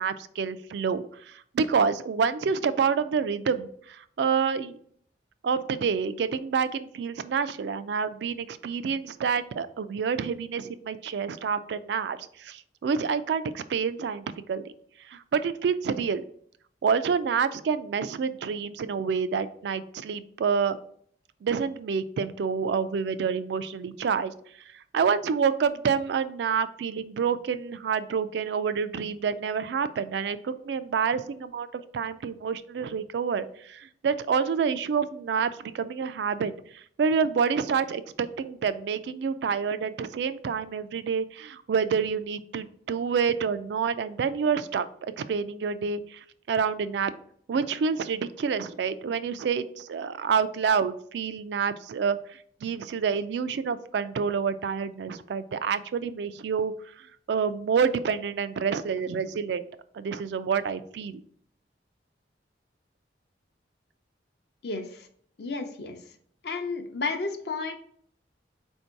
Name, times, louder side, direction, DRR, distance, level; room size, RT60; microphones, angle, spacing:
voice 1, 0.0-4.8 5.4-14.7 15.1-16.2 16.8-20.8 21.4-24.3 24.7-47.1 47.5-59.7 59.9-61.2, right 6 dB, 70° right, 12 dB, 0.3 m, -28 dB
voice 2, 64.6-65.1 65.4-66.0 66.4-67.7, left 3 dB, 60° left, 6 dB, 0.6 m, -32 dB
4.4 x 2.7 x 4.5 m, 0.62 s
head